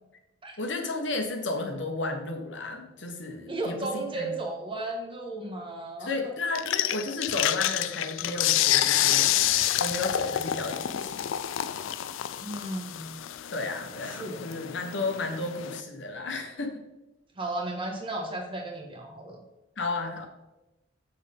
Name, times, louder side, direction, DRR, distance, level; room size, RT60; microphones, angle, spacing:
voice 1, 0.6-4.4 6.0-9.3 9.8-11.3 13.5-16.8 19.8-20.3, left 3 dB, 70° left, 3 dB, 1.2 m, -33 dB
voice 2, 3.5-6.3 12.4-13.2 14.2-14.6 17.4-19.4, right 2 dB, 25° right, 1 dB, 1.3 m, -34 dB
sound 1, 6.6-15.8, left 12 dB, 85° left, 0.4 m, -28 dB
7.0 x 6.5 x 3.5 m, 0.98 s
head